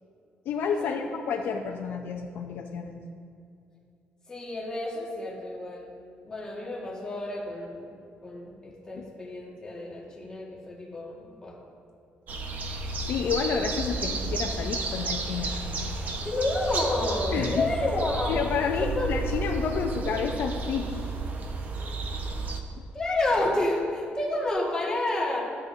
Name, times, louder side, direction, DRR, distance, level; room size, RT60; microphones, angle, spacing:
voice 1, 0.5-3.0 9.0-9.1 13.1-15.7 17.3-17.7 18.3-21.2 22.8-22.9, left 6 dB, 65° left, 2 dB, 0.5 m, -30 dB
voice 2, 4.3-5.9 6.2-7.8 8.2-11.6 16.2-18.4 18.8-19.1 22.9-25.4, left 2 dB, 20° left, -4 dB, 1.7 m, -30 dB
sound 1, 12.3-22.6, right 2 dB, 45° right, 0.8 m, -32 dB
12.5 x 8.3 x 2.7 m, 2.5 s
cardioid pair, 145°, 4 cm